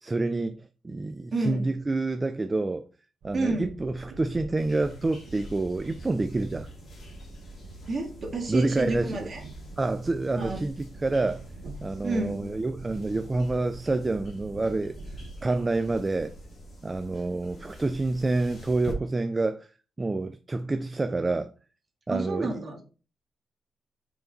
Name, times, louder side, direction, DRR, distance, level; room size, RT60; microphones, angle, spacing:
voice 1, 0.0-2.9 3.2-6.7 8.5-9.3 9.8-11.4 11.8-15.0 15.4-16.3 16.8-19.7 20.0-21.5 22.1-22.5, right 2 dB, 15° right, 0.3 m, -28 dB
voice 2, 1.3-1.7 3.3-3.7 7.9-9.4 10.4-10.6 12.0-12.5 22.1-22.8, right 2 dB, 35° right, 1.6 m, -30 dB
Train, 3.2-15.4, right 1 dB, 65° right, 0.8 m, -45 dB
sound 1, 4.6-18.9, equal, 40° left, 2.3 m, -46 dB
5.7 x 4.6 x 3.9 m
wide cardioid pair, 170°, 0 cm